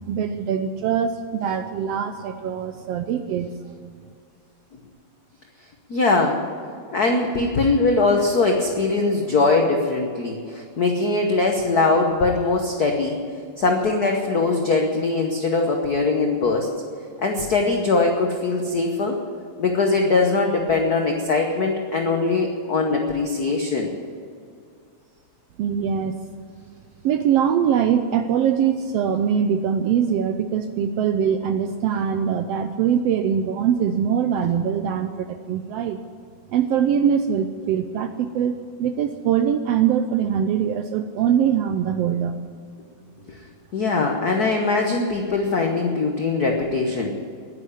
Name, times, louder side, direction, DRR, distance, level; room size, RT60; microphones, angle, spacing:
voice 1, 0.1-4.0 25.6-26.2 27.0-36.0 36.5-42.3, right 8 dB, 80° right, 8 dB, 1.4 m, -22 dB
voice 2, 5.9-6.4 6.9-13.2 13.6-16.7 17.2-19.2 19.6-23.9 43.7-47.1, left 3 dB, 80° left, 2 dB, 0.8 m, -21 dB
10.5 x 10.0 x 9.9 m, 2.3 s
omnidirectional pair, 3.3 m